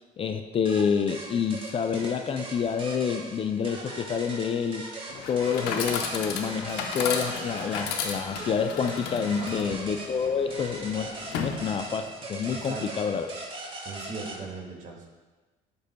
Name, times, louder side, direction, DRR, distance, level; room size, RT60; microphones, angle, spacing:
voice 1, 0.0-4.9 5.3-13.3, left 6 dB, 35° left, 8 dB, 0.4 m, -28 dB
sound 1, 0.6-14.4, right 2 dB, 30° right, 1.7 m, -40 dB
Chatter / Coin (dropping), 5.1-12.1, left 6 dB, 85° left, 0.7 m, -35 dB
voice 2, 9.4-9.7 12.5-13.0 13.8-15.1, right 4 dB, 50° right, 0 dB, 1.5 m, -39 dB
12.0 x 4.0 x 2.2 m, 1.3 s
cardioid pair, 95°, 16 cm